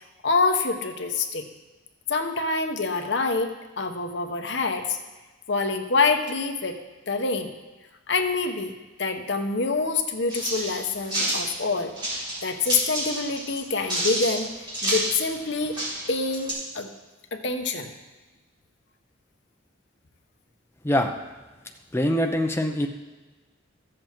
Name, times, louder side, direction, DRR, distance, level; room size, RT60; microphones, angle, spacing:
voice 1, 0.2-1.4 2.1-5.0 5.5-6.8 7.1-7.5 8.1-8.7 9.0-11.9 12.4-14.5 14.8-15.8 16.1-16.9 17.3-17.9, left 4 dB, 60° left, 5 dB, 1.0 m, -26 dB
sound 1, 10.3-11.4 11.9-12.4 12.7-13.6 13.8-15.1 15.4-15.5 15.7-16.5, right 1 dB, 25° right, 4.1 m, -28 dB
voice 2, 21.9-22.9, left 1 dB, 10° left, 3 dB, 0.6 m, -23 dB
14.5 x 7.7 x 4.6 m, 1.2 s
head